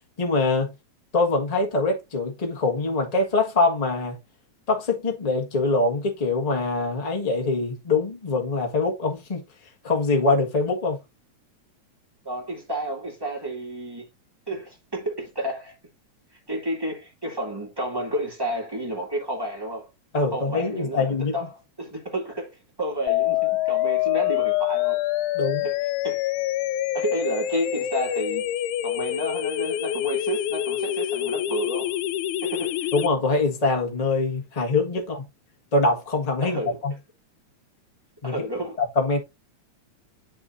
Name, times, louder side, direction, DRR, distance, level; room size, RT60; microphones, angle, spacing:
voice 1, 0.2-0.7 1.1-4.2 4.7-9.4 9.8-11.0 20.1-21.3 25.3-25.7 32.9-35.2 35.7-36.9 38.2-38.4 38.8-39.2, left 3 dB, 20° left, 1.0 m, -24 dB
voice 2, 12.2-14.1 14.5-15.8 16.3-19.9 20.3-25.0 25.6-25.7 26.0-26.2 26.9-28.4 28.8-32.0 32.4-32.9 36.4-36.8 38.2-38.8, right 1 dB, 10° right, 2.0 m, -31 dB
sound 1, 23.1-33.1, left 13 dB, 90° left, 2.0 m, -26 dB
10.5 x 4.7 x 2.6 m
omnidirectional pair, 3.3 m